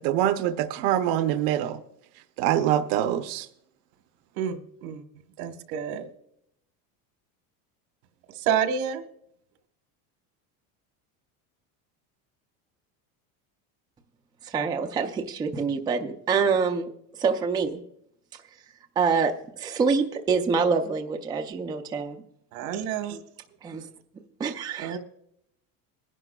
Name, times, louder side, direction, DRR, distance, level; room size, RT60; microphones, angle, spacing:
voice 1, 0.0-1.8 2.4-3.5, right 11 dB, 55° right, 9 dB, 0.7 m, -24 dB
voice 2, 4.3-5.0 5.4-6.1 8.3-9.0 22.5-23.2 24.8-25.0, right 8 dB, 85° right, 8 dB, 1.4 m, -29 dB
voice 3, 14.4-16.9 17.2-17.8 19.0-22.2 23.6-23.9 24.4-25.0, right 5 dB, 10° right, 4 dB, 0.4 m, -26 dB
21.0 x 11.0 x 2.3 m, 0.74 s
cardioid pair, 160°, 41 cm